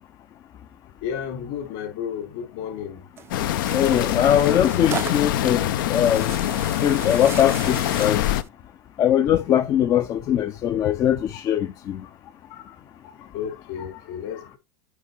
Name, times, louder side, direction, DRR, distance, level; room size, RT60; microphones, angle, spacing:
voice 1, 1.0-3.1 12.4-12.8 13.0-14.6, left 8 dB, 55° left, 3.9 m, -33 dB
Tearing, 3.2-8.5, right 9 dB, 20° right, 0.4 m, -37 dB
sound 1, 3.3-8.4, left 12 dB, 75° left, 0.8 m, -24 dB
voice 2, 3.7-6.3 6.8-8.3 9.0-12.0, left 10 dB, 30° left, 0.5 m, -21 dB
8.6 x 3.6 x 5.6 m
supercardioid pair, 145°, 11 cm